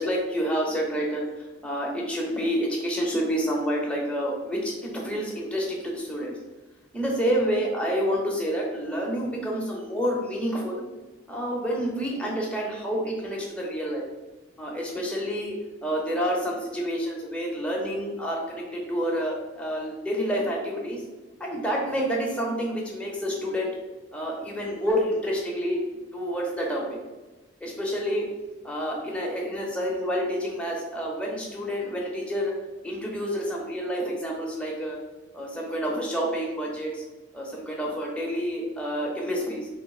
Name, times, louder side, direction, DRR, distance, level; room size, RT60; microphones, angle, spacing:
voice 1, 0.0-6.3 6.9-10.8 11.3-14.1 14.6-15.5 15.8-21.0 21.4-23.7 24.1-25.8 26.1-27.0 27.6-28.2 28.6-32.5 32.8-35.0 35.3-37.0 37.3-39.7, equal, 5° left, -2 dB, 0.7 m, -28 dB
3.2 x 2.9 x 4.2 m, 1.2 s
head